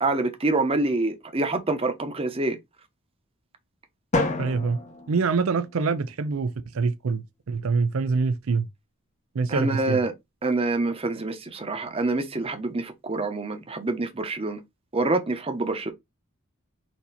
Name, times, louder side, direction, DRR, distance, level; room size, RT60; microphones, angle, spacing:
voice 1, 0.0-2.6 9.5-10.1 10.4-14.6 14.9-15.9, right 2 dB, 25° right, 0.8 m, -26 dB
Drum, 4.1-6.1, left 2 dB, 35° left, 0.8 m, -30 dB
voice 2, 4.4-4.8 5.1-7.2 7.5-8.7 9.4-10.0, right 4 dB, 75° right, 0.5 m, -25 dB
4.4 x 2.8 x 4.0 m
head